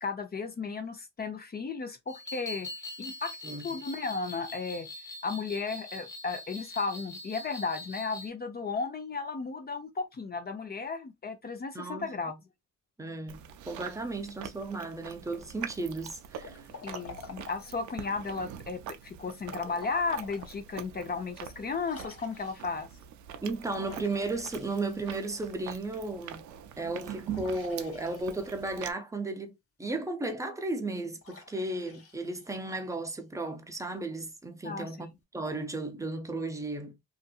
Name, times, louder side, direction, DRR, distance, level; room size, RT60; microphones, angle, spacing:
voice 1, 0.0-2.7 3.0-4.9 5.2-12.3 16.8-22.9 34.6-34.9, left 4 dB, 30° left, 0.7 m, -34 dB
sound 1, 2.1-8.3, left 2 dB, 10° left, 1.1 m, -43 dB
voice 2, 11.7-12.1 13.0-16.6 23.4-26.4 26.8-29.5 29.8-37.0, right 2 dB, 10° right, 0.7 m, -35 dB
Chewing mastication, 13.3-28.9, right 9 dB, 70° right, 0.5 m, -44 dB
Liquid, 16.4-18.0 19.4-20.5 21.0-21.1 21.8-22.8 23.7-25.3 27.3-28.7 31.2-32.9, left 4 dB, 50° left, 1.0 m, -49 dB
2.6 x 2.6 x 2.4 m
cardioid pair, 90°, 30 cm